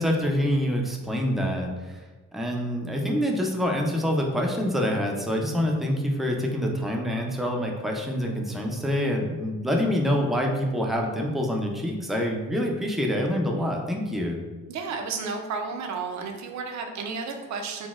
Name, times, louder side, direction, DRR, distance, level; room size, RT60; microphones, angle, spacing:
voice 1, 0.0-14.4, equal, ahead, 0 dB, 0.4 m, -26 dB
voice 2, 14.7-17.9, right 4 dB, 65° right, 4 dB, 0.5 m, -32 dB
3.9 x 2.1 x 2.4 m, 1.2 s
cardioid pair, 90°, 30 cm